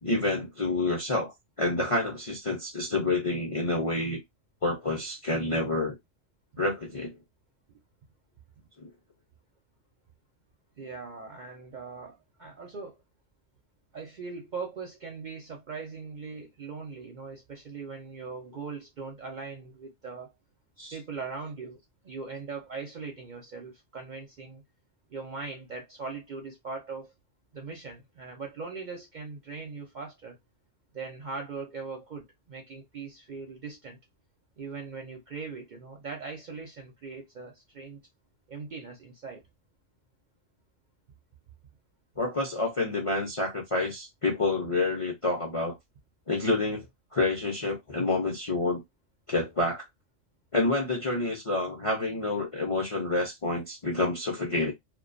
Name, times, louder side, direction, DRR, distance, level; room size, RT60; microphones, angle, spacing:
voice 1, 0.0-1.3 1.6-4.2 4.6-5.9 6.6-7.1 8.8-8.9 20.8-20.9 42.2-45.8 46.3-46.9 47.1-48.8 49.3-49.9 50.5-54.7, left 2 dB, 45° left, 0.4 m, -28 dB
voice 2, 10.8-13.0 13.9-20.3 20.9-21.8 22.0-24.6 25.1-27.1 27.5-30.4 30.9-34.0 34.6-38.0 38.5-39.4, right 4 dB, 55° right, 0.5 m, -40 dB
2.3 x 2.2 x 2.5 m
omnidirectional pair, 1.3 m